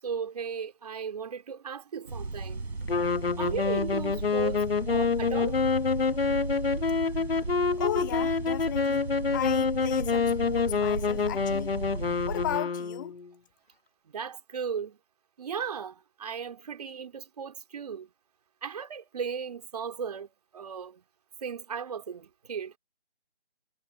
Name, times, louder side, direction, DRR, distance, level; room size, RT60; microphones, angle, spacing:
voice 1, 0.0-2.7 3.4-5.6 14.1-15.0 15.4-18.1 18.6-21.0 21.4-22.7, right 6 dB, 35° right, 2.7 m, -36 dB
sound 1, 2.1-12.6, right 3 dB, 70° right, 5.8 m, -36 dB
sound 2, 2.9-13.3, left 5 dB, 60° left, 1.1 m, -27 dB
voice 2, 7.8-9.1 9.3-11.7 12.2-13.2, left 13 dB, 20° left, 1.8 m, -35 dB
figure-of-eight pair, 155°, 33 cm